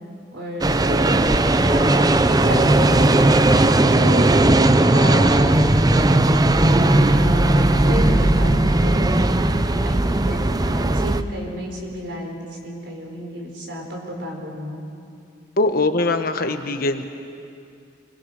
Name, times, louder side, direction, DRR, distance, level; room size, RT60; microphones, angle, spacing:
voice 1, 0.3-4.3 4.9-5.6 7.1-14.8, equal, 75° right, 1 dB, 4.5 m, -31 dB
sound 1, 0.6-11.2, right 2 dB, 20° right, 0.6 m, -17 dB
voice 2, 15.6-17.0, left 2 dB, 50° left, 7 dB, 1.2 m, -21 dB
26.5 x 22.0 x 6.5 m, 2.5 s
head